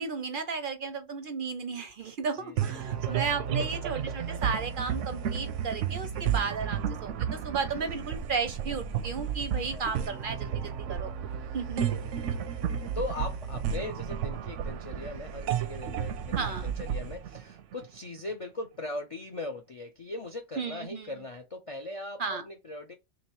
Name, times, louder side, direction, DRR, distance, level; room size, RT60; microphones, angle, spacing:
voice 1, 0.0-11.3 11.5-11.8 16.4-16.7 20.6-21.1 22.2-22.4, right 5 dB, 60° right, 0.6 m, -34 dB
voice 2, 2.3-3.8 7.8-7.9 9.6-9.9 11.8-22.9, left 2 dB, 55° left, 0.3 m, -40 dB
sound 1, 2.6-18.2, right 8 dB, 85° right, 0.9 m, -32 dB
3.1 x 2.9 x 4.5 m
omnidirectional pair, 1.2 m